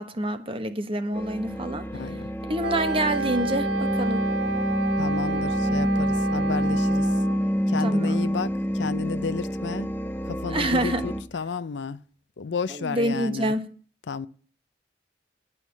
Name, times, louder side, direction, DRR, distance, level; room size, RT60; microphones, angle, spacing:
voice 1, 0.0-2.2 2.4-4.2 7.8-8.3 10.5-11.1 12.7-13.6, right 1 dB, 30° right, 1.2 m, -27 dB
sound 1, 1.1-11.2, equal, 10° left, 0.9 m, -27 dB
voice 2, 1.9-2.3 5.0-7.1 7.7-9.9 10.3-12.0 12.4-13.6 14.1-14.3, left 5 dB, 70° left, 0.5 m, -32 dB
Wind instrument woodwind instrument, 2.6-7.4, right 4 dB, 70° right, 1.0 m, -30 dB
11.0 x 5.6 x 8.2 m
head